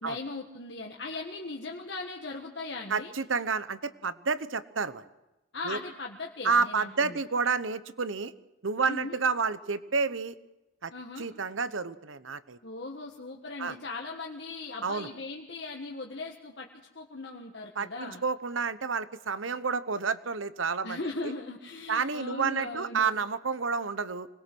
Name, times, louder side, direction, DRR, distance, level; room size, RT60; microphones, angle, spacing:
voice 1, 0.0-3.1 5.5-7.2 8.8-9.2 10.9-11.3 12.6-16.7 16.9-18.2 20.8-23.1, left 3 dB, 60° left, 0 dB, 1.6 m, -38 dB
voice 2, 2.9-5.0 5.6-5.8 6.4-8.3 8.6-10.4 10.8-10.9 11.2-12.6 13.6-13.8 14.8-15.1 17.7-21.3 21.9-24.3, right 5 dB, 90° right, 14 dB, 1.0 m, -30 dB
25.0 x 20.5 x 6.2 m, 1.0 s
head